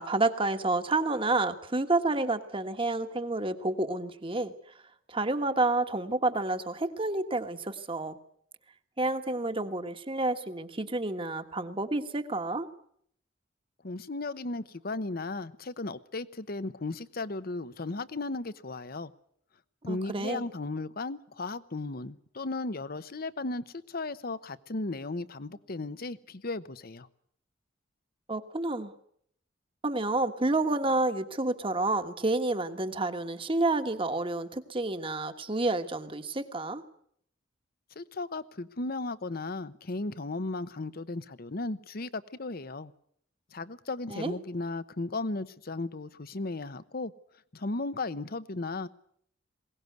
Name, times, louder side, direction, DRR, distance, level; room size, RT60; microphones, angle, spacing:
voice 1, 0.0-4.5 5.1-8.2 9.0-12.7 19.9-20.4 28.3-28.9 29.8-36.8 44.1-44.4, right 2 dB, 30° right, 9 dB, 1.5 m, -29 dB
voice 2, 13.8-19.1 19.8-27.1 38.0-42.9 43.5-47.1 47.5-48.9, left 2 dB, 50° left, 15 dB, 0.9 m, -35 dB
21.5 x 18.5 x 9.4 m, 0.68 s
head